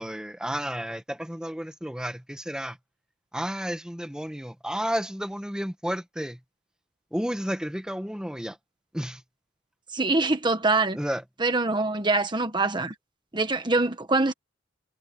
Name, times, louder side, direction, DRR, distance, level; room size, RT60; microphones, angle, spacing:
voice 1, 0.0-2.8 3.3-6.4 7.1-8.6 8.9-9.2 10.9-11.2, equal, 5° right, 1.4 m, -32 dB
voice 2, 9.9-11.0 11.4-12.9 13.3-14.3, right 3 dB, 25° right, 1.3 m, -24 dB
head